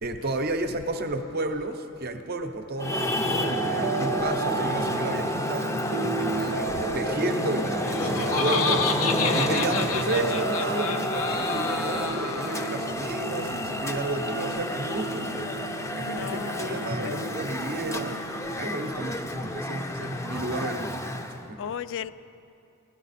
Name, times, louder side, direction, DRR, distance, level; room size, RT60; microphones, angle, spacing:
voice 1, 0.0-5.7 6.1-8.9 9.3-15.5 16.0-18.2 18.6-21.1 21.5-21.7, right 2 dB, 50° right, 7 dB, 0.8 m, -32 dB
Traffic noise roadway noise, 2.8-21.4, left 1 dB, 15° left, 0.6 m, -30 dB
sound 1, 3.4-19.1, right 6 dB, 90° right, 0.5 m, -34 dB
Laughter, 7.7-12.9, left 5 dB, 90° left, 0.8 m, -30 dB
voice 2, 16.1-17.3 21.6-22.1, left 7 dB, 60° left, 14 dB, 0.3 m, -36 dB
16.5 x 11.5 x 4.2 m, 2.6 s
head